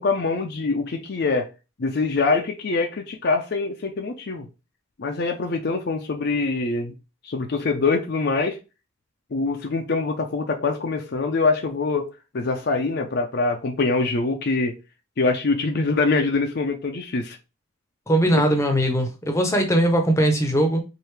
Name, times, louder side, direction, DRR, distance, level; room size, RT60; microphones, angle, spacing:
voice 1, 0.0-1.5 1.8-4.5 5.0-6.9 7.2-8.6 9.3-14.7 15.2-17.4 18.3-18.4, left 3 dB, 50° left, 0.5 m, -24 dB
voice 2, 18.1-20.8, right 1 dB, 15° left, 0.7 m, -20 dB
4.7 x 2.6 x 3.3 m
head